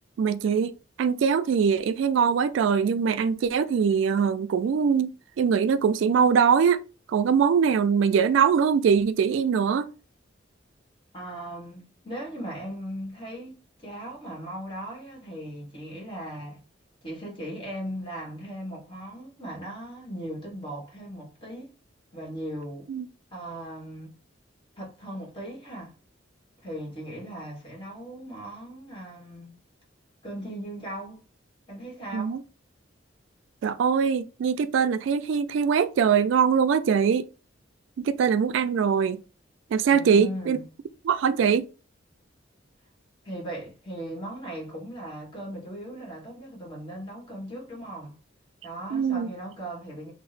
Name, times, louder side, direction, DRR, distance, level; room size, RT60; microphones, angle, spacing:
voice 1, 0.2-0.7 1.0-5.1 5.4-6.8 7.1-9.9 22.9-23.1 32.1-32.4 33.6-37.2 38.0-39.2 39.7-40.6 41.1-41.6 48.9-49.3, right 6 dB, 75° right, 0.3 m, -22 dB
voice 2, 11.1-16.6 17.0-21.7 22.1-22.9 23.3-24.1 24.8-25.9 26.6-29.6 30.2-31.2 31.7-32.4 39.9-40.6 43.2-48.2 48.6-50.1, right 1 dB, 25° left, 1.4 m, -38 dB
2.8 x 2.0 x 4.0 m
head